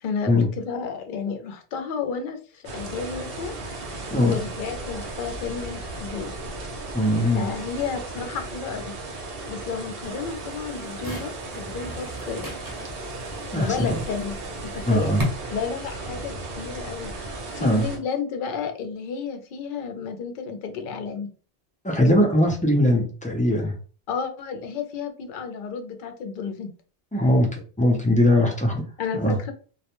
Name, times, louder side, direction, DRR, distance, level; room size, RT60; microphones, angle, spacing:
voice 1, 0.0-4.0 4.3-6.3 7.3-8.9 9.5-12.5 13.5-14.4 14.6-15.1 15.5-21.3 24.1-26.7 29.0-29.5, left 6 dB, 60° left, 6 dB, 0.6 m, -32 dB
sound 1, 2.6-18.0, right 2 dB, 65° right, 0.8 m, -36 dB
voice 2, 6.9-7.5 13.5-14.0 14.9-15.2 17.6-17.9 21.8-23.7 27.1-28.8 29.1-29.4, left 1 dB, 10° left, -2 dB, 0.3 m, -20 dB
sound 2, 10.0-15.2, right 1 dB, 20° right, 0.7 m, -37 dB
2.3 x 2.1 x 2.9 m, 0.39 s
omnidirectional pair, 1.1 m